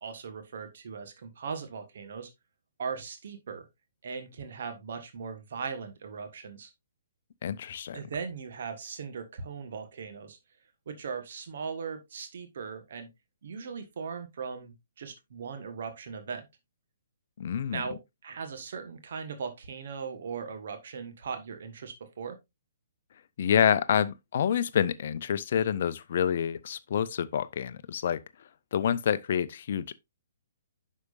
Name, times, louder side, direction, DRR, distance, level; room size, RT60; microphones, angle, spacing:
voice 1, 0.0-2.3 2.8-3.7 4.0-6.7 7.9-10.4 10.8-13.1 13.4-16.5 17.7-22.4, right 5 dB, 50° right, 1.5 m, -39 dB
voice 2, 7.4-8.0 17.4-17.8 23.4-28.2 28.7-29.9, left 8 dB, 45° left, 0.6 m, -27 dB
9.5 x 6.2 x 2.6 m
figure-of-eight pair, 125°, 0 cm